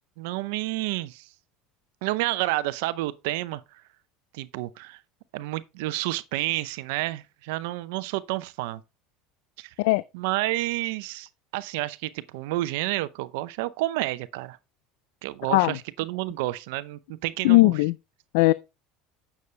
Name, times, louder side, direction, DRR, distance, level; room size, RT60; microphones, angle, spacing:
voice 1, 0.2-1.3 2.0-3.6 4.3-5.0 5.3-8.8 9.6-9.7 10.1-14.6 15.2-17.7, right 18 dB, 80° right, 0.6 m, -30 dB
voice 2, 17.4-17.9 18.3-18.5, left 20 dB, 75° left, 0.3 m, -18 dB
9.4 x 7.0 x 3.3 m
supercardioid pair, 100°, 0 cm